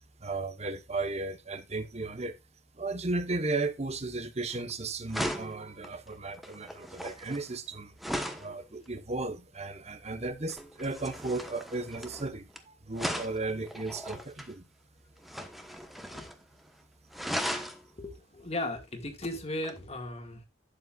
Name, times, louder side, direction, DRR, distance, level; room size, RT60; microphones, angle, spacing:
voice 1, 0.2-2.4 2.7-8.0 8.4-14.7, right 3 dB, 35° right, 1.1 m, -35 dB
sound 1, 4.5-4.7 5.1-8.5 10.5-12.6 12.9-14.5 15.2-16.4 16.7-16.8 17.1-17.8 19.6-19.8, equal, ahead, 1.1 m, -37 dB
voice 2, 18.0-20.5, left 1 dB, 35° left, 1.9 m, -36 dB
12.0 x 8.3 x 2.4 m
head